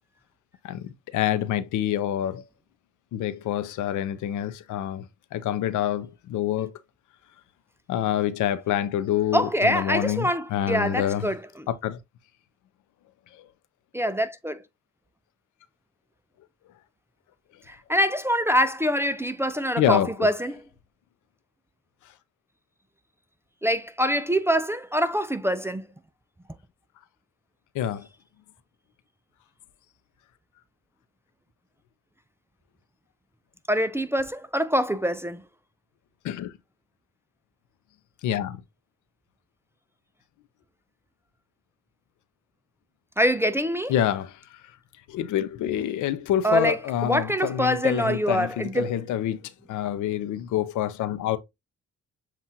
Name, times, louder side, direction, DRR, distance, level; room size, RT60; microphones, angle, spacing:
voice 1, 0.6-2.4 3.1-5.1 5.3-6.7 7.9-11.3 11.7-12.0 19.8-20.1 27.7-28.1 36.2-36.5 38.2-38.6 43.9-44.4 45.1-51.4, left 11 dB, 75° left, 0.6 m, -27 dB
voice 2, 9.3-11.7 13.9-14.6 17.7-20.6 23.6-25.9 33.7-35.4 43.2-43.9 46.4-48.9, equal, 10° right, 0.3 m, -25 dB
7.2 x 2.4 x 2.7 m
cardioid pair, 90°, 30 cm